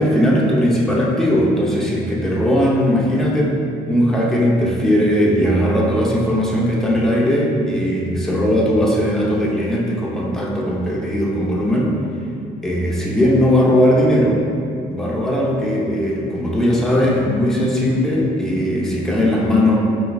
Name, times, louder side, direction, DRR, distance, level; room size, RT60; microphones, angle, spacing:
voice 1, 0.0-3.6 3.8-11.9 12.6-14.4 14.9-19.8, equal, 5° left, -4 dB, 0.6 m, -18 dB
4.9 x 3.1 x 2.6 m, 2.5 s
cardioid pair, 110°, 17 cm